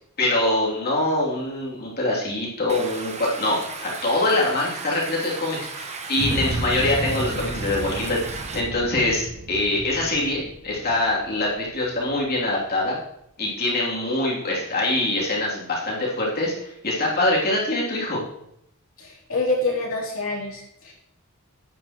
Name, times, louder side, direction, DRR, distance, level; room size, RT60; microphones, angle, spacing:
voice 1, 0.2-13.0 13.4-18.2, left 2 dB, 45° left, -4 dB, 3.0 m, -24 dB
Stream, 2.7-8.6, right 4 dB, 30° right, 0.9 m, -36 dB
sound 1, 6.2-12.3, right 2 dB, 55° right, 0.9 m, -32 dB
voice 2, 19.0-20.9, left 2 dB, 70° left, -4 dB, 3.2 m, -27 dB
9.4 x 9.2 x 3.1 m, 0.75 s
head